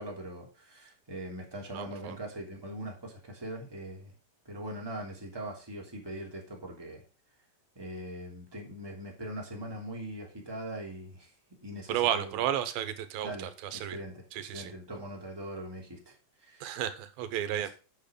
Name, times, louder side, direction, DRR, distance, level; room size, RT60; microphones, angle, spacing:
voice 1, 0.0-4.1 4.4-7.0 7.7-11.3 11.6-12.5 13.2-16.2 16.4-16.8, right 1 dB, 5° right, -1 dB, 2.6 m, -41 dB
voice 2, 1.7-2.2 11.9-14.0 14.3-14.7 16.6-17.7, right 10 dB, 80° right, 11 dB, 2.8 m, -32 dB
9.1 x 6.8 x 5.2 m, 0.34 s
omnidirectional pair, 4.2 m